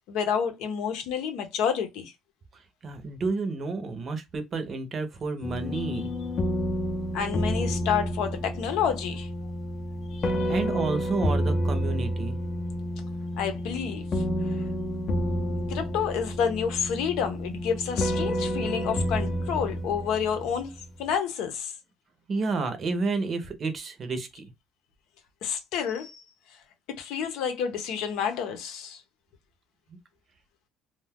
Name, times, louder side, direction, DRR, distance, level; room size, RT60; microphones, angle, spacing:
voice 1, 0.1-2.1 5.7-6.0 7.1-9.3 10.1-10.5 13.4-14.7 15.7-20.7 21.0-21.7 25.4-26.2 26.9-29.0, left 7 dB, 80° left, 0.8 m, -29 dB
voice 2, 2.5-6.1 10.4-12.4 22.3-24.5 29.9-30.0, right 3 dB, 35° right, 0.6 m, -30 dB
sound 1, 5.4-20.9, equal, 35° left, 0.6 m, -30 dB
2.5 x 2.3 x 3.4 m
cardioid pair, 145°, 0 cm